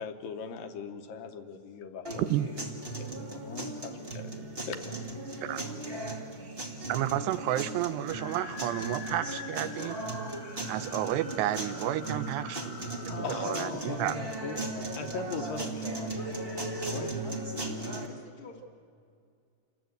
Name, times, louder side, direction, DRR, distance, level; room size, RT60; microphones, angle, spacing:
voice 1, 0.0-2.6 3.0-4.8 5.3-5.5 13.2-17.2, left 5 dB, 70° left, 6 dB, 2.4 m, -41 dB
sound 1, 2.0-18.1, right 2 dB, 35° right, 0.8 m, -37 dB
voice 2, 6.9-10.0 10.7-14.2, right 13 dB, 90° right, 13 dB, 2.9 m, -31 dB
sound 2, 8.1-13.6, left 7 dB, 85° left, 4.1 m, -46 dB
Wind instrument woodwind instrument, 11.0-15.2, right 13 dB, 60° right, 3.4 m, -54 dB
voice 3, 13.1-14.3 15.9-18.6, left 5 dB, 55° left, -2 dB, 1.5 m, -45 dB
28.0 x 19.5 x 8.0 m, 2.3 s
omnidirectional pair, 4.7 m